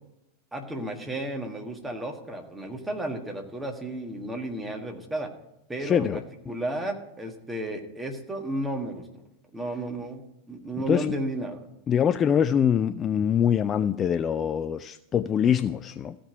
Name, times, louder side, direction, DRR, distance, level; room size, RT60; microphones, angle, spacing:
voice 1, 0.5-5.3 5.7-6.1 6.5-9.0 9.5-11.6, right 1 dB, 10° right, 1.6 m, -33 dB
voice 2, 5.8-6.2 10.9-11.1 11.9-16.2, left 8 dB, 25° left, 0.3 m, -24 dB
14.5 x 5.1 x 9.1 m
figure-of-eight pair, 90°, 0 cm